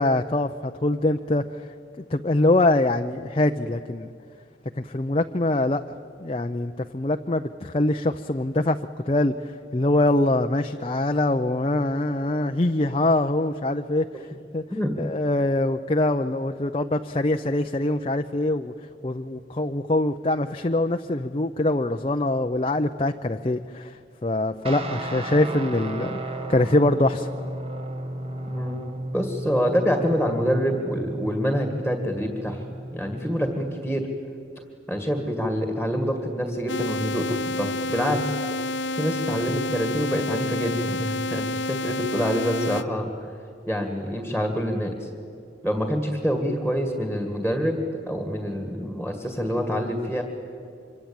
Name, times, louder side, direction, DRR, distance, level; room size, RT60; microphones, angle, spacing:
voice 1, 0.0-1.4 2.1-4.1 4.8-5.8 6.2-8.8 9.1-14.3 14.5-14.6 15.0-18.7 19.0-27.3, left 2 dB, 30° left, 6 dB, 0.6 m, -23 dB
Guitar, 24.6-33.6, right 1 dB, 30° right, 1.6 m, -34 dB
voice 2, 29.1-32.7 32.9-34.1 34.9-38.3 38.9-43.3 43.7-45.1 45.6-50.2, equal, 5° right, 5 dB, 2.0 m, -26 dB
sound 1, 36.7-42.8, left 2 dB, 80° left, 0.8 m, -29 dB
25.5 x 24.5 x 8.9 m, 2.4 s
head